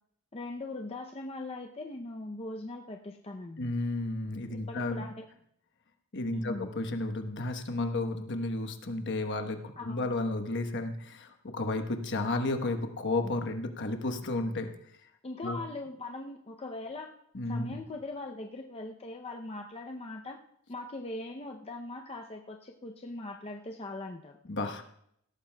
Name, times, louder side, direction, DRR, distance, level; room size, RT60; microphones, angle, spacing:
voice 1, 0.3-3.7 4.5-5.2 6.3-6.7 9.8-10.2 15.2-17.1 17.5-20.4 20.7-24.4, left 2 dB, 30° left, 2 dB, 0.6 m, -40 dB
voice 2, 3.6-5.0 6.1-14.7 15.4-15.6 17.3-17.7 24.5-24.8, left 2 dB, 60° left, 6 dB, 1.1 m, -32 dB
17.5 x 13.5 x 2.3 m, 0.70 s
head